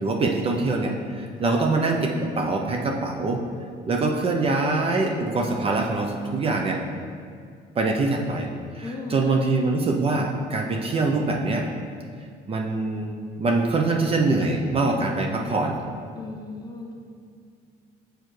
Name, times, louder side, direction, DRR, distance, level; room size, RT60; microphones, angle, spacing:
voice 1, 0.0-3.4 3.9-6.8 7.8-8.5 8.7-11.7 12.5-15.8, right 3 dB, 35° right, 1 dB, 0.6 m, -24 dB
voice 2, 1.4-1.7 8.8-9.5 16.1-16.9, left 2 dB, 25° left, 1 dB, 0.7 m, -37 dB
6.6 x 4.6 x 3.2 m, 2.2 s
cardioid pair, 110°, 17 cm